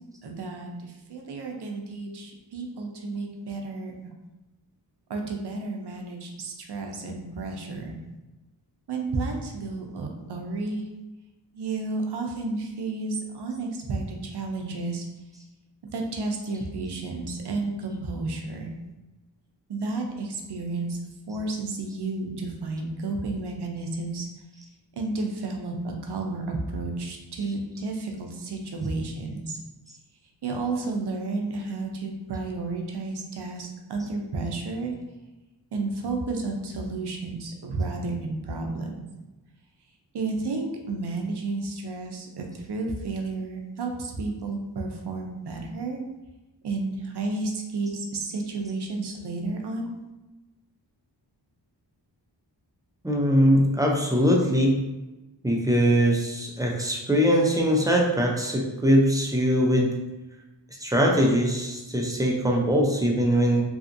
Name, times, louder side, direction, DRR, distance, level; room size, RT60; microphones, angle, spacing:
voice 1, 0.2-3.9 5.1-8.0 8.9-10.8 11.5-15.1 15.9-18.7 19.7-21.0 21.3-24.3 25.0-29.6 30.4-35.0 35.7-38.9 40.1-46.0 46.6-49.9, right 3 dB, 65° right, 2 dB, 0.6 m, -32 dB
voice 2, 53.0-54.8 55.4-60.0 60.8-63.6, equal, 10° right, -1 dB, 0.3 m, -22 dB
2.7 x 2.5 x 2.5 m, 1.1 s
wide cardioid pair, 100°, 44 cm